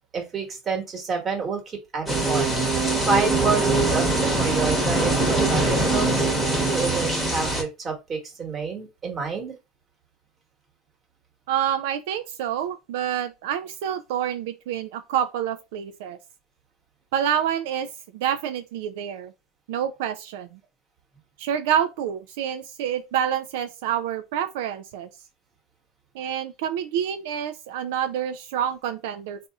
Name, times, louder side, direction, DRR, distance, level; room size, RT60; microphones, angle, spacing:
voice 1, 0.1-2.8 3.1-4.1 4.4-9.6, right 4 dB, 20° right, 1.2 m, -29 dB
sound 1, 2.1-7.6, right 2 dB, 5° left, 1.0 m, -22 dB
voice 2, 11.5-16.2 17.1-19.3 19.7-20.6 21.4-25.1 26.1-29.5, right 9 dB, 70° right, 0.4 m, -27 dB
4.0 x 2.6 x 3.4 m
cardioid pair, 175°, 0 cm